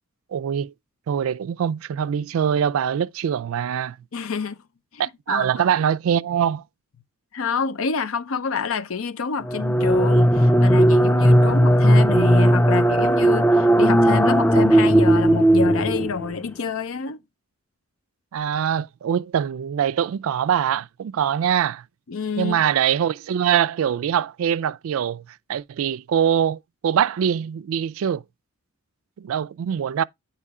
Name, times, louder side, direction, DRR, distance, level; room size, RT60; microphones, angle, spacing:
voice 1, 0.3-0.7 1.1-4.0 5.0-6.6 11.4-11.5 18.3-21.8 22.4-25.2 25.5-28.2 29.2-30.0, right 8 dB, 70° right, 0.3 m, -23 dB
voice 2, 4.1-4.6 4.9-5.6 7.3-17.2 22.1-22.6, left 5 dB, 70° left, 0.6 m, -28 dB
sound 1, 9.4-16.4, right 1 dB, 10° left, 0.3 m, -16 dB
8.3 x 3.0 x 4.8 m
head